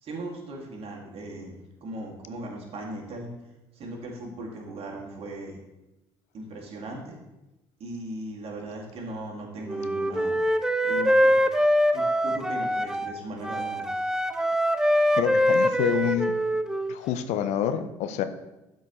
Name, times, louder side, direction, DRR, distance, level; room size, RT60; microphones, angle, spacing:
voice 1, 0.0-1.5 1.8-3.3 3.7-5.6 6.3-7.2 7.8-10.4 10.8-11.4 11.9-13.9, right 1 dB, 45° right, -1 dB, 2.1 m, -38 dB
Wind instrument woodwind instrument, 9.7-13.2 13.4-17.0, equal, 5° right, 0.5 m, -24 dB
voice 2, 15.1-16.3 16.9-18.2, left 10 dB, 55° left, 10 dB, 0.5 m, -27 dB
12.5 x 4.6 x 3.0 m, 0.98 s
figure-of-eight pair, 55°, 14 cm